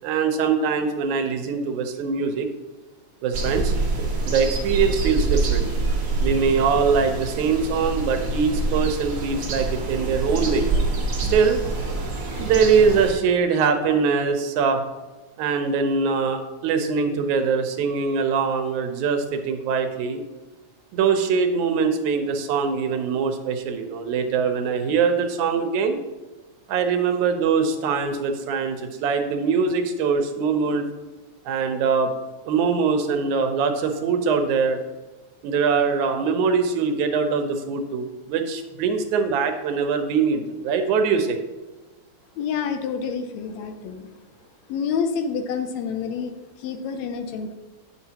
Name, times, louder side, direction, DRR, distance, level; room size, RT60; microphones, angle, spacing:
voice 1, 0.0-2.5 3.2-3.7 4.2-5.7 6.2-10.7 11.2-11.6 12.4-14.8 15.4-20.2 20.9-26.0 26.7-30.9 31.5-32.1 32.4-34.8 35.4-41.4, right 5 dB, 90° right, 6 dB, 2.2 m, -22 dB
sound 1, 3.3-13.1, right 3 dB, 55° right, 0.9 m, -26 dB
voice 2, 42.4-44.1 44.7-47.5, left 6 dB, 75° left, 7 dB, 1.8 m, -28 dB
9.2 x 7.1 x 2.9 m, 1.2 s
omnidirectional pair, 3.3 m